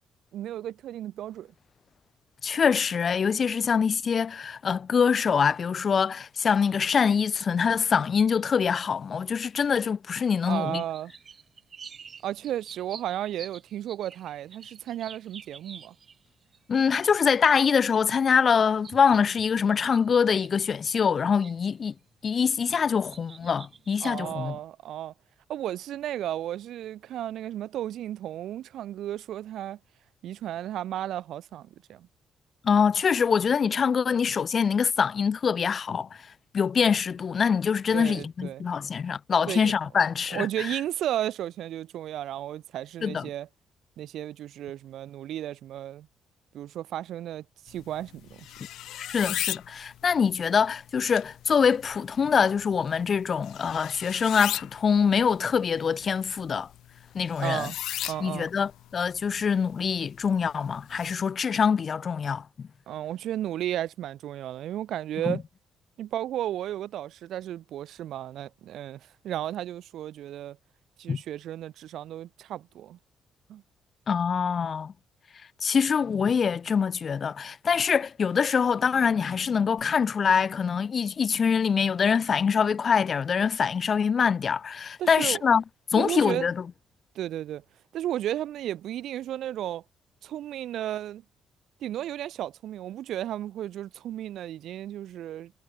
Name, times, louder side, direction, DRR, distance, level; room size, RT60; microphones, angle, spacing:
voice 1, 0.3-1.5 10.5-11.1 12.2-15.9 24.0-25.1 25.5-29.8 30.2-32.1 37.9-38.7 39.5-39.7 40.3-43.5 44.0-46.1 46.5-48.5 57.4-57.8 58.1-58.5 62.9-65.4 66.0-70.6 71.0-73.0 73.5-73.6 85.0-85.4 86.0-86.5 87.1-87.6 87.9-89.8 90.2-91.2 91.8-95.5, right 12 dB, 75° right, 0.6 m, -34 dB
voice 2, 2.4-10.8 16.7-21.9 22.2-24.6 32.6-36.1 36.5-40.7 43.0-43.3 49.0-56.7 57.1-57.7 58.2-62.7 65.3-65.4 71.1-71.2 74.1-74.9 75.6-85.6 85.9-86.5, left 6 dB, 45° left, 0.3 m, -24 dB
sound 1, 10.7-16.6 16.9-22.0 22.3-24.1, right 6 dB, 45° right, 1.9 m, -49 dB
sound 2, 47.7-61.1, left 13 dB, 80° left, 0.6 m, -39 dB
cardioid pair, 90°, 0 cm